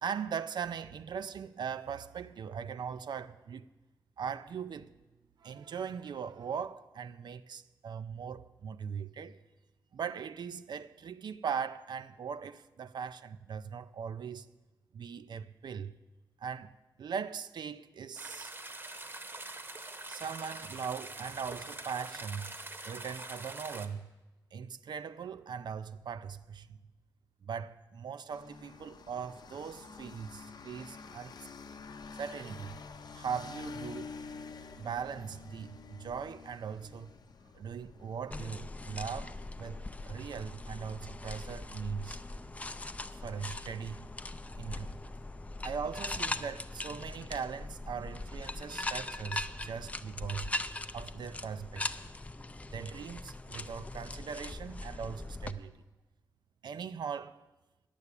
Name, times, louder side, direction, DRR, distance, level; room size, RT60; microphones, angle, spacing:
voice 1, 0.0-3.7 4.2-4.9 5.4-9.4 9.9-14.5 14.9-16.0 16.4-16.7 17.0-18.5 20.1-22.5 22.8-24.1 24.5-26.8 27.4-31.5 32.1-32.8 33.1-34.1 34.8-37.1 37.5-42.2 43.1-44.1 44.6-45.0 45.6-50.5 50.9-51.9 52.7-55.7 56.6-57.4, right 7 dB, 70° right, 0.4 m, -40 dB
sound 1, 18.2-23.9, right 2 dB, 30° right, 0.8 m, -44 dB
sound 2, 28.3-48.1, left 5 dB, 60° left, 0.6 m, -51 dB
sound 3, 38.3-55.5, left 2 dB, 20° left, 0.4 m, -40 dB
9.8 x 7.0 x 8.2 m
wide cardioid pair, 110°, 8 cm